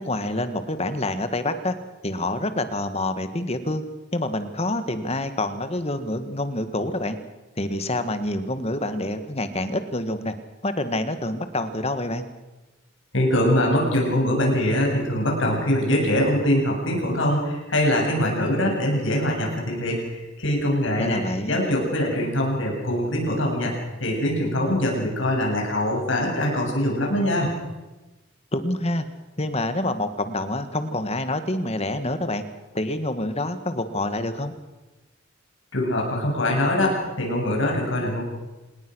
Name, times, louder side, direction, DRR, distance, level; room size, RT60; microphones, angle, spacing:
voice 1, 0.0-1.8 2.0-3.8 4.1-7.2 7.6-10.3 10.6-12.2 21.0-21.6 28.5-29.1 29.4-32.4 32.7-34.5, left 1 dB, 30° left, 10 dB, 1.7 m, -27 dB
voice 2, 13.1-21.2 21.5-27.5 35.7-38.2, left 1 dB, 70° left, -1 dB, 7.3 m, -23 dB
26.5 x 20.0 x 6.3 m, 1.1 s
head